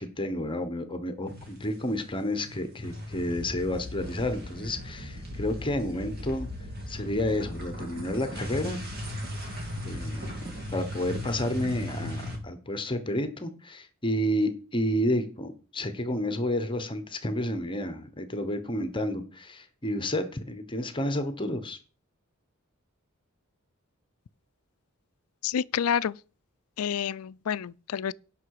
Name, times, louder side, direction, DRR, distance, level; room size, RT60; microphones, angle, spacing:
voice 1, 0.0-6.5 6.9-8.8 9.8-21.8, left 1 dB, 25° left, 1.1 m, -30 dB
sound 1, 1.3-2.0 2.3-12.4, left 1 dB, 50° right, 3.1 m, -37 dB
voice 2, 25.4-26.2 26.8-28.1, left 8 dB, 85° left, 0.4 m, -29 dB
16.5 x 5.8 x 4.8 m
head